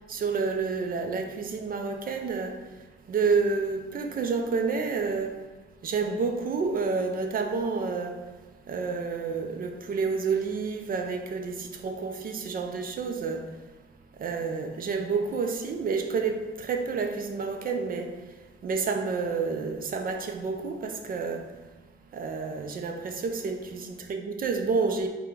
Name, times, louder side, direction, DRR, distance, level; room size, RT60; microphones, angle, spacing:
voice 1, 0.1-2.6 3.1-5.4 5.8-8.2 8.7-13.5 14.2-18.2 18.6-21.5 22.1-23.7 24.2-25.1, right 4 dB, 45° right, 0.5 m, -29 dB
3.7 x 2.2 x 4.5 m
cardioid pair, 90°, 20 cm